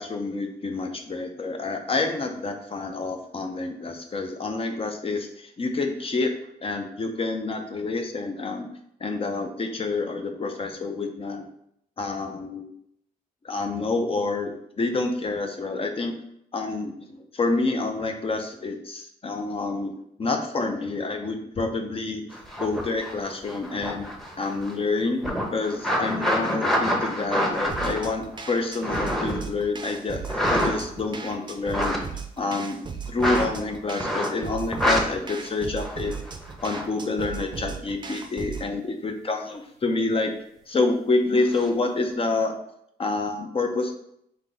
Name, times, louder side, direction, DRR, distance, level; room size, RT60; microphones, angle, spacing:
voice 1, 0.0-6.3 6.6-8.7 9.0-11.4 12.0-12.7 13.4-16.1 16.5-19.9 20.2-22.2 22.6-24.1 24.4-25.2 25.5-32.0 32.4-32.8 33.1-36.1 36.6-40.3 40.7-42.5 43.0-43.9, left 3 dB, 35° left, 4 dB, 0.6 m, -28 dB
sound 1, 22.3-24.8 25.2-29.5 30.2-31.1 31.6-32.0 33.2-33.5 34.0-34.4 34.7-35.0 35.8-36.8 41.3-41.7, equal, ahead, 0.8 m, -27 dB
sound 2, 27.7-38.7, right 5 dB, 30° right, 0.5 m, -37 dB
3.7 x 2.8 x 3.9 m, 0.73 s
cardioid pair, 80°, 16 cm